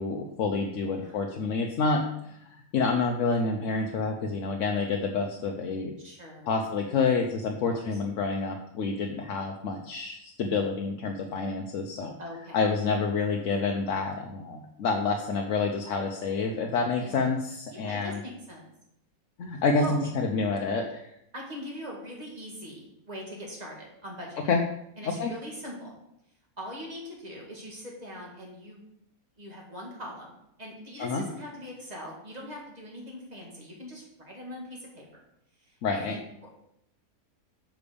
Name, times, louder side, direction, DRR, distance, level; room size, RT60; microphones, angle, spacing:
voice 1, 0.0-5.9 6.5-12.1 12.5-18.2 19.4-21.1 24.5-24.6 25.0-25.3 31.0-31.2 35.8-36.2, left 4 dB, 65° left, 2 dB, 1.0 m, -28 dB
voice 2, 0.8-1.2 6.0-6.5 7.7-8.0 12.2-12.6 17.0-17.3 17.7-18.7 19.8-20.1 21.3-24.4 25.0-26.0 26.6-28.8 29.4-30.3 30.6-35.1 35.6-36.5, equal, 30° right, -2 dB, 2.1 m, -42 dB
6.0 x 5.1 x 6.8 m, 0.79 s
omnidirectional pair, 1.5 m